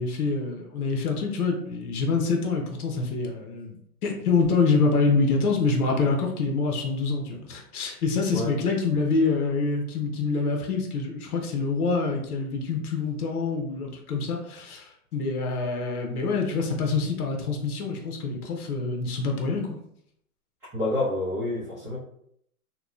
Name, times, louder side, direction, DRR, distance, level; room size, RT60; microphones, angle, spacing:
voice 1, 0.0-19.7, left 4 dB, 80° left, 2 dB, 0.8 m, -26 dB
voice 2, 20.7-22.0, left 2 dB, 5° right, -14 dB, 0.6 m, -28 dB
2.9 x 2.2 x 2.3 m, 0.71 s
hypercardioid pair, 140°, 44 cm